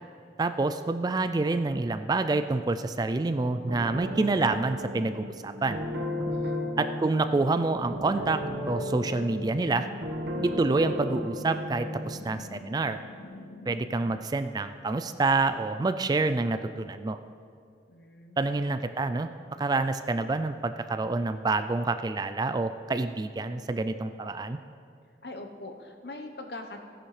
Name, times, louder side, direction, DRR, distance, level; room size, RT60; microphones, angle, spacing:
voice 1, 0.4-5.8 6.8-9.9 10.4-13.0 13.7-17.2 18.4-19.3 19.6-24.6, right 3 dB, 20° right, 10 dB, 0.3 m, -27 dB
sound 1, 3.7-12.2, equal, 70° right, 1.5 m, -35 dB
voice 2, 6.2-6.8 17.9-18.5 25.2-26.9, left 2 dB, 65° left, 5 dB, 1.0 m, -43 dB
sound 2, 7.3-14.3, left 3 dB, 80° left, 0.6 m, -46 dB
16.5 x 10.0 x 3.3 m, 2.4 s
head